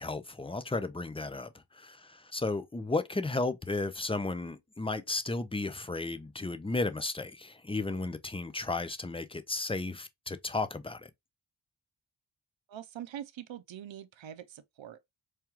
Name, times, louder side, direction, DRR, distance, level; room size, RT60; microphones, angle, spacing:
voice 1, 0.0-11.1, left 3 dB, 10° left, 0.5 m, -34 dB
voice 2, 12.7-15.2, right 10 dB, 75° right, 0.6 m, -44 dB
4.8 x 2.3 x 2.9 m
cardioid pair, 50°, 46 cm